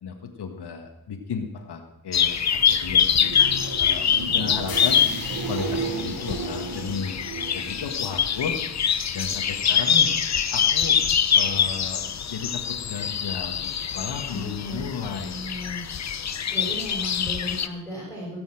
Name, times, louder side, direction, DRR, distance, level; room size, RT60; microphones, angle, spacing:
voice 1, 0.0-3.4 3.8-4.1 4.3-5.0 5.5-8.6 9.1-10.1 10.5-11.0 11.3-12.0 12.3-15.4, left 6 dB, 90° left, 3 dB, 1.8 m, -34 dB
sound 1, 2.1-17.7, left 7 dB, 45° left, 0.7 m, -24 dB
sound 2, 3.1-8.9 9.2-9.8 16.8-16.9, right 4 dB, 70° right, 1.7 m, -34 dB
sound 3, 4.7-8.7, left 5 dB, 65° left, 1.8 m, -41 dB
voice 2, 14.3-16.1 16.5-18.4, left 1 dB, 5° right, -5 dB, 5.8 m, -36 dB
17.0 x 7.1 x 7.9 m, 0.86 s
wide cardioid pair, 120°, 39 cm